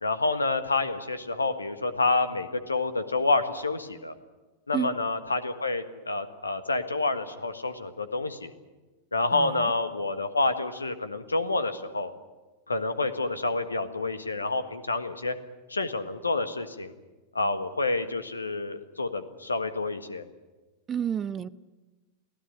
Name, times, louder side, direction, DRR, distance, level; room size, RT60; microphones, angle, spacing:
voice 1, 0.0-4.1 4.7-8.5 9.1-12.1 12.7-15.3 15.7-16.9 17.3-20.2, left 3 dB, 80° left, 11 dB, 1.6 m, -28 dB
voice 2, 20.9-21.5, right 8 dB, 25° right, 16 dB, 0.8 m, -29 dB
23.5 x 16.0 x 9.9 m, 1.2 s
figure-of-eight pair, 90°, 0 cm